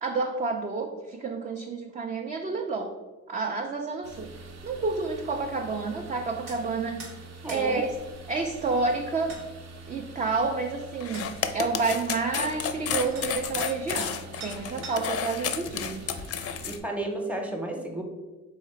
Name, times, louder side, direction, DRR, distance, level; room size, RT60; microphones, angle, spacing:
voice 1, 0.0-2.9 3.3-4.3 4.6-7.0 7.5-7.9 8.3-9.4 9.9-16.1, right 4 dB, 25° right, 3 dB, 0.3 m, -29 dB
sound 1, 4.0-16.8, right 3 dB, 60° right, 0.7 m, -45 dB
sound 2, 6.5-6.6 7.0-7.2 7.5-7.7 8.9-9.0 9.3-9.4 10.6-10.7 11.1-11.3 12.7-12.8 13.1-13.3 13.6-14.2 14.4-15.2, right 3 dB, 85° right, 1.2 m, -42 dB
voice 2, 7.4-7.8 16.6-18.0, right 1 dB, 5° right, 2 dB, 0.8 m, -32 dB
sound 3, 11.0-16.8, left 8 dB, 50° left, 0.4 m, -31 dB
4.0 x 2.8 x 4.3 m, 1.3 s
cardioid pair, 90°, 30 cm